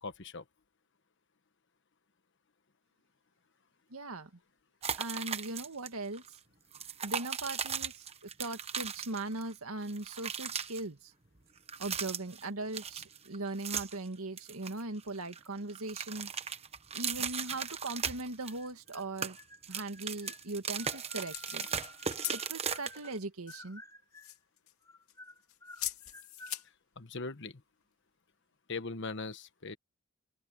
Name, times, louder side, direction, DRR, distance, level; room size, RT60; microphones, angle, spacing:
voice 1, 0.0-0.4 27.0-27.6 28.7-29.8, left 3 dB, 55° left, 1.3 m, -40 dB
voice 2, 3.9-4.3 5.0-6.2 7.0-8.1 8.4-11.1 11.8-16.3 16.9-19.4 19.7-21.7 22.3-23.8, right 2 dB, 85° right, 1.9 m, -39 dB
sound 1, 4.8-5.9 6.1-6.3 6.7-9.5 9.8-10.8 11.6-12.5 12.7-14.1 14.4-15.4 15.7-18.6 18.9-23.2, right 7 dB, 30° right, 1.0 m, -37 dB
sound 2, 18.4-19.0 19.3-23.2 23.5-24.4 24.8-26.6, left 2 dB, 15° left, 4.4 m, -54 dB
sound 3, 20.8-22.4 23.5-23.6 24.2-24.8 25.1-26.7, left 14 dB, 75° left, 2.3 m, -42 dB
open air
head